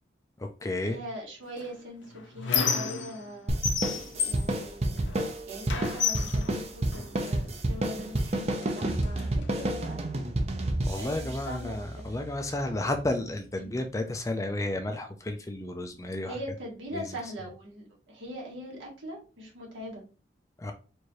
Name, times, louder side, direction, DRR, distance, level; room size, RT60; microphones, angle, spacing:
voice 1, 0.4-1.0 10.9-16.4 16.9-17.0 20.6-20.7, left 2 dB, 15° left, 5 dB, 0.4 m, -32 dB
voice 2, 0.9-3.5 4.2-5.0 5.5-10.2 11.0-12.0 13.5-13.8 16.3-20.0, equal, 85° right, -2 dB, 1.7 m, -41 dB
Squeak, 1.6-3.3 3.6-5.3 5.7-7.4 8.2-8.3 8.6-9.6, left 6 dB, 75° left, 0.6 m, -32 dB
sound 1, 3.5-12.3, right 1 dB, 35° right, 0.6 m, -30 dB
4.6 x 2.6 x 3.1 m, 0.34 s
head